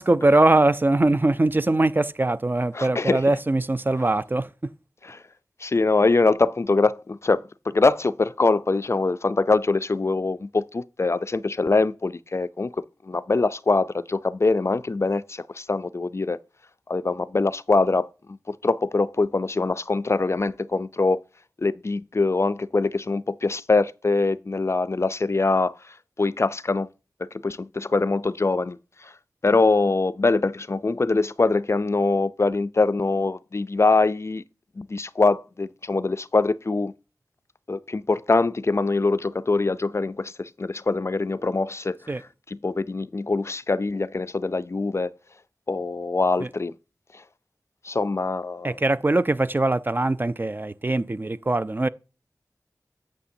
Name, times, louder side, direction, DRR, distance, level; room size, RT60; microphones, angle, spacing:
voice 1, 0.0-4.7 42.1-42.2 46.4-46.5 48.6-51.9, right 2 dB, 30° right, 0.4 m, -22 dB
voice 2, 2.7-3.2 5.0-5.2 5.6-7.4 7.7-12.7 13.1-16.4 16.9-21.2 21.6-25.7 26.2-26.9 27.2-28.8 29.0-29.1 29.4-34.4 34.8-36.9 37.7-42.0 42.6-45.1 45.7-46.7 47.8-48.8, left 3 dB, 45° left, 0.4 m, -23 dB
8.5 x 7.6 x 2.6 m
wide cardioid pair, 70°, 7 cm